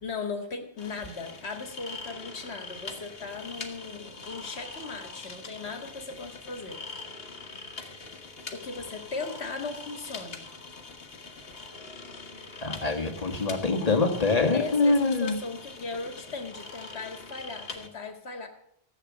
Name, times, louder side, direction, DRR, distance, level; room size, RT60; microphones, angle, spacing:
voice 1, 0.0-6.8 8.5-10.4 14.5-18.5, left 4 dB, 85° left, 6 dB, 2.0 m, -37 dB
sound 1, 0.8-17.9, left 3 dB, 70° left, 1.6 m, -43 dB
voice 2, 12.6-15.4, left 3 dB, 35° left, 3 dB, 1.7 m, -24 dB
14.0 x 8.3 x 7.3 m, 0.73 s
omnidirectional pair, 1.1 m